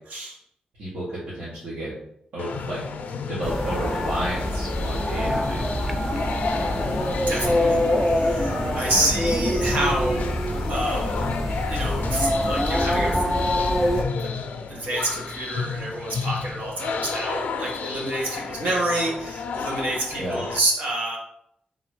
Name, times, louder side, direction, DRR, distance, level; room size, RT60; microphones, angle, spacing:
voice 1, 0.8-1.9 2.3-2.8 3.2-5.6 8.9-9.1 20.2-20.4, right 1 dB, 75° right, -10 dB, 1.6 m, -31 dB
sound 1, 2.4-20.6, left 5 dB, 80° left, 0.4 m, -32 dB
sound 2, 3.4-14.0, equal, 5° right, 0.4 m, -25 dB
voice 2, 7.3-10.3 10.7-11.3 11.7-13.2 14.2-14.3 14.7-21.2, right 1 dB, 60° right, -2 dB, 1.3 m, -28 dB
3.8 x 2.9 x 4.8 m, 0.74 s
wide cardioid pair, 180°, 3 cm